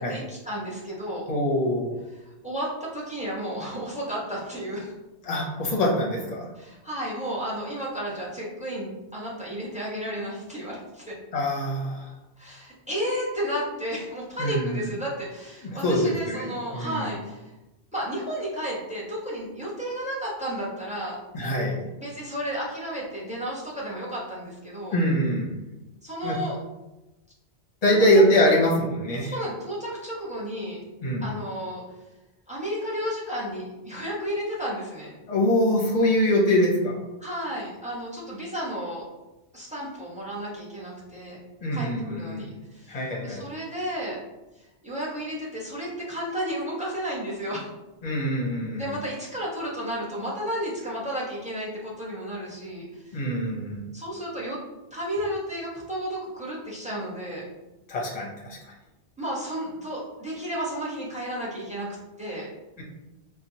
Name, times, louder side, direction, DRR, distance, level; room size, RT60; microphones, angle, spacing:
voice 1, 0.0-1.3 2.4-4.9 6.6-11.1 12.4-17.5 17.9-21.2 22.0-25.0 26.0-26.6 27.9-28.0 29.2-30.8 31.2-31.8 32.5-35.2 37.2-39.0 39.5-41.4 41.7-44.2 44.6-47.7 48.8-53.2 53.9-54.6 54.9-57.4 59.2-61.9 62.2-62.5, equal, 5° right, -6 dB, 0.9 m, -32 dB
voice 2, 1.3-2.0 5.2-6.5 11.3-12.1 14.4-14.9 15.8-17.1 21.3-21.8 24.9-25.6 26.2-26.4 27.8-29.4 31.0-31.3 35.3-37.0 41.6-42.5 42.9-43.5 48.0-48.9 53.1-53.8 57.9-58.6, equal, 40° left, -2 dB, 0.8 m, -24 dB
4.4 x 2.3 x 2.7 m, 1.0 s
omnidirectional pair, 1.1 m